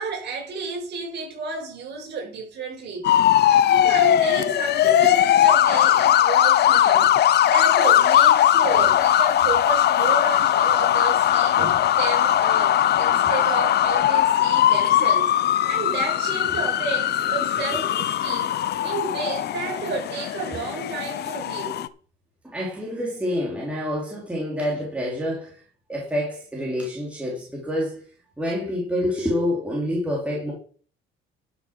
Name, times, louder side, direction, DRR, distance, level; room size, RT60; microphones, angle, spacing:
voice 1, 0.0-3.1 3.4-7.1 7.4-15.3 15.7-18.5 18.8-21.9, right 4 dB, 55° right, 6.3 m, -31 dB
sound 1, 3.0-21.9, left 11 dB, 50° left, 0.7 m, -19 dB
voice 2, 22.4-25.6 25.9-28.0 28.4-30.5, left 1 dB, 5° right, 3.3 m, -27 dB
11.5 x 7.0 x 6.1 m
cardioid pair, 145°, 21 cm